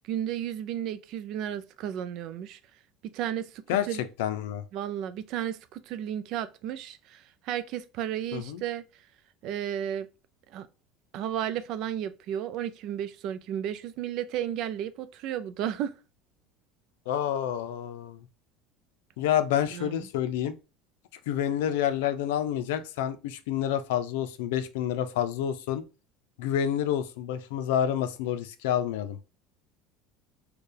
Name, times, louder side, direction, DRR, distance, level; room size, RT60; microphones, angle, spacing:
voice 1, 0.1-2.6 3.1-4.0 4.7-8.8 9.4-10.1 10.5-10.7 11.1-15.9 19.7-20.0, right 10 dB, 55° right, 0.4 m, -33 dB
voice 2, 4.2-4.6 8.3-8.6 17.1-18.3 19.2-20.5 21.3-25.8 26.4-29.2, left 10 dB, 85° left, 0.5 m, -28 dB
4.4 x 2.2 x 3.3 m
supercardioid pair, 130°, 0 cm